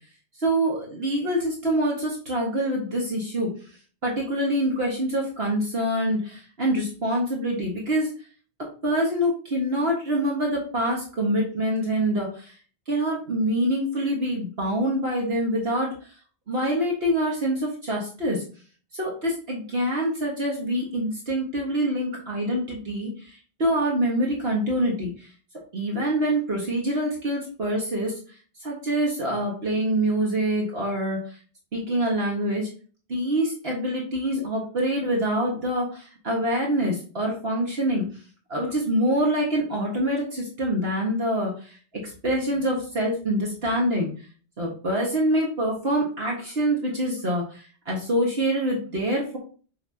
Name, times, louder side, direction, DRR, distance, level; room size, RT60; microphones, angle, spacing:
voice 1, 0.4-3.5 4.0-8.1 8.8-12.5 12.9-15.9 16.5-18.4 18.9-25.1 25.7-28.1 28.6-31.2 31.7-32.7 33.1-38.1 38.5-41.8 42.0-44.1 44.6-49.4, right 1 dB, 60° right, -3 dB, 1.9 m, -25 dB
7.1 x 5.6 x 2.8 m, 0.39 s
omnidirectional pair, 1.2 m